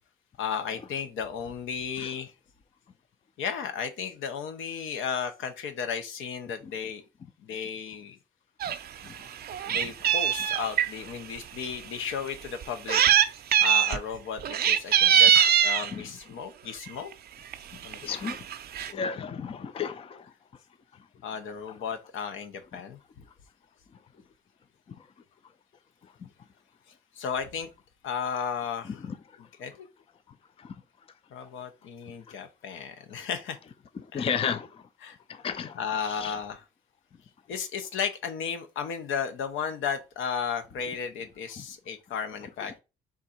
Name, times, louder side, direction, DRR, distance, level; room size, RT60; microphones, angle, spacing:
voice 1, 0.4-2.3 3.4-7.0 7.4-8.2 9.6-13.0 13.6-17.1 17.8-18.2 21.2-23.0 27.2-27.7 28.0-29.1 29.4-29.9 31.3-33.6 34.1-34.3 35.0-35.2 35.7-36.6 37.5-42.8, left 7 dB, 80° left, 0.8 m, -34 dB
Meow, 8.6-8.8 9.2-10.9 11.6-11.7 12.6-13.3 13.5-14.0 14.4-15.9 16.9-17.1 17.5-17.6 17.8-17.9 18.3-18.9, right 9 dB, 50° right, 0.5 m, -22 dB
voice 2, 18.0-18.4 18.9-20.2 34.1-34.7 35.4-35.7 36.2-36.3, left 6 dB, 30° left, 0.4 m, -31 dB
3.7 x 2.6 x 4.3 m
cardioid pair, 90°, 20 cm